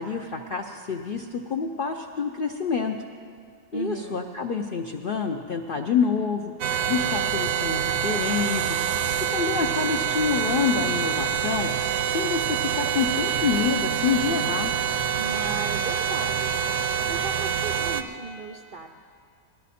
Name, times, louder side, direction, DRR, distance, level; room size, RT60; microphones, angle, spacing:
voice 1, 0.0-3.0 3.7-6.5 6.9-8.8 9.3-11.7 12.1-14.7, left 6 dB, 65° left, 3 dB, 0.5 m, -27 dB
voice 2, 3.7-4.4 15.2-18.9, right 4 dB, 65° right, 2 dB, 0.5 m, -37 dB
sound 1, 6.6-18.0, right 8 dB, 80° right, 1.2 m, -26 dB
18.5 x 12.5 x 4.2 m, 2.2 s
omnidirectional pair, 1.6 m